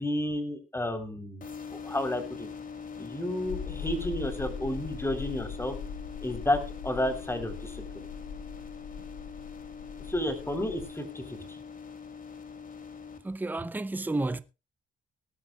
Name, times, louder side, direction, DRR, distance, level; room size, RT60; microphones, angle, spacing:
voice 1, 0.0-1.4 1.7-2.5 3.0-5.8 6.2-8.1 10.1-11.6, left 1 dB, 10° left, 3.7 m, -31 dB
sound 1, 1.4-13.2, left 6 dB, 45° left, 2.7 m, -43 dB
sound 2, 3.4-10.9, left 6 dB, 85° left, 1.6 m, -41 dB
voice 2, 13.2-14.4, right 2 dB, 10° right, 0.7 m, -31 dB
18.5 x 12.5 x 2.4 m
cardioid pair, 90°, 20 cm